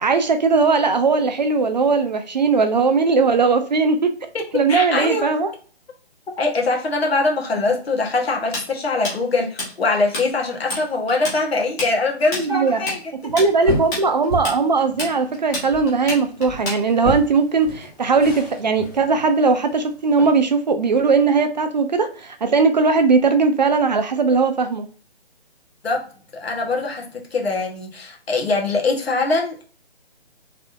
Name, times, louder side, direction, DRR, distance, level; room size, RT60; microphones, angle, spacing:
voice 1, 0.0-4.1 4.5-5.5 12.4-12.8 13.2-24.9, right 4 dB, 45° right, 0.5 m, -19 dB
voice 2, 4.3-5.3 6.4-13.1 25.8-26.0 26.3-29.6, left 3 dB, 70° left, 1.5 m, -22 dB
Tools, 8.5-10.3 10.5-10.8 11.1-17.2, left 1 dB, 15° left, 1.1 m, -28 dB
sound 1, 13.3-20.4, right 1 dB, 40° left, 1.4 m, -33 dB
3.4 x 3.3 x 2.6 m
hypercardioid pair, 160°, 32 cm